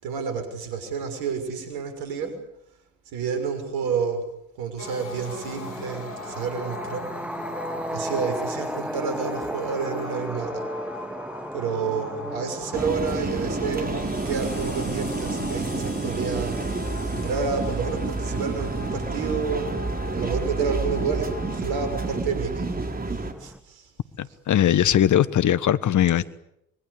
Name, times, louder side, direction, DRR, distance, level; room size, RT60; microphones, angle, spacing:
voice 1, 0.0-2.4 3.1-4.3 4.6-7.1 7.9-10.7 11.5-14.0 14.2-16.7 17.1-19.7 20.1-22.8 23.1-23.9 26.1-26.2, right 5 dB, 70° right, 8 dB, 6.4 m, -30 dB
sound 1, 4.8-22.2, left 4 dB, 80° left, 5.0 m, -41 dB
sound 2, 4.8-23.6, equal, 5° right, 1.9 m, -37 dB
sound 3, 12.7-23.3, right 3 dB, 25° right, 4.3 m, -29 dB
voice 2, 24.2-26.2, left 11 dB, 50° left, 16 dB, 1.4 m, -20 dB
25.0 x 23.0 x 8.4 m, 0.79 s
hypercardioid pair, 50°, 39 cm